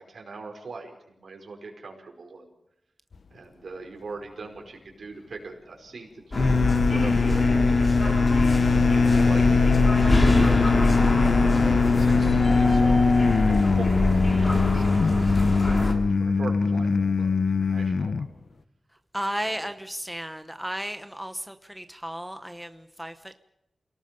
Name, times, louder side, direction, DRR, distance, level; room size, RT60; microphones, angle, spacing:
voice 1, 0.0-2.5 3.3-8.5 8.9-18.3 19.4-19.7, right 3 dB, 70° right, 2 dB, 5.3 m, -41 dB
sound 1, 6.3-15.9, left 1 dB, 30° left, 3.5 m, -24 dB
sound 2, 6.4-18.3, left 4 dB, 70° left, 0.9 m, -22 dB
voice 2, 19.1-23.3, equal, 5° right, 9 dB, 1.0 m, -34 dB
29.0 x 18.5 x 5.4 m, 0.83 s
wide cardioid pair, 120°, 0 cm